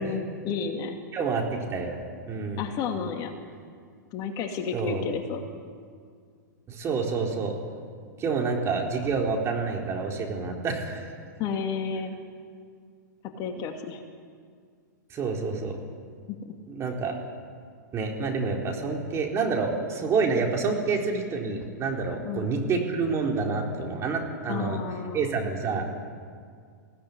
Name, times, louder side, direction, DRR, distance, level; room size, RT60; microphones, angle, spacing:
voice 1, 0.0-1.0 2.6-3.4 4.1-5.4 11.4-12.2 13.4-14.0 16.3-16.5 22.2-22.5 24.5-25.3, left 6 dB, 40° left, 4 dB, 2.5 m, -32 dB
voice 2, 1.1-2.0 2.3-2.7 4.7-5.0 6.7-7.6 8.2-11.1 15.1-15.8 16.7-17.2 17.9-24.8 25.1-25.8, right 4 dB, 25° right, 1 dB, 4.2 m, -28 dB
22.5 x 16.5 x 9.9 m, 2.1 s
hypercardioid pair, 110°, 10 cm